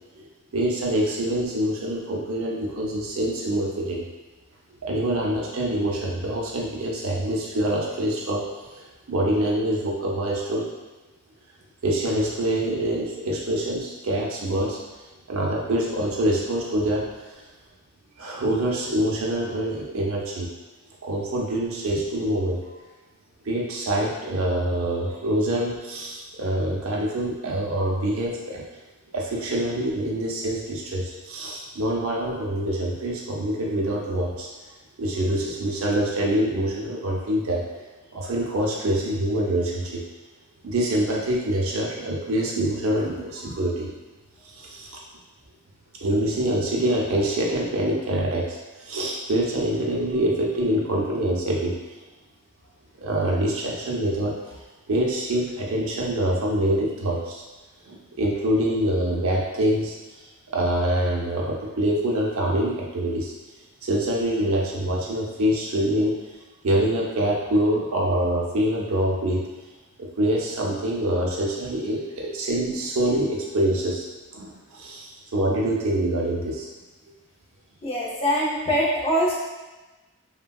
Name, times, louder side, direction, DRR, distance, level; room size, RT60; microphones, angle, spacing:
voice 1, 0.5-4.0 4.8-8.4 8.7-10.7 11.8-14.8 15.3-17.4 18.2-20.5 21.0-22.6 23.4-28.6 29.1-34.5 35.0-37.6 38.1-40.0 40.6-43.9 44.4-45.0 46.0-51.7 53.0-54.6 54.9-57.4 57.9-59.9 60.5-63.3 63.8-66.2 66.6-69.4 70.0-76.7, right 1 dB, 75° right, -2 dB, 0.6 m, -25 dB
voice 2, 77.8-79.3, equal, 25° left, -5 dB, 0.5 m, -23 dB
3.4 x 2.2 x 2.2 m, 1.1 s
head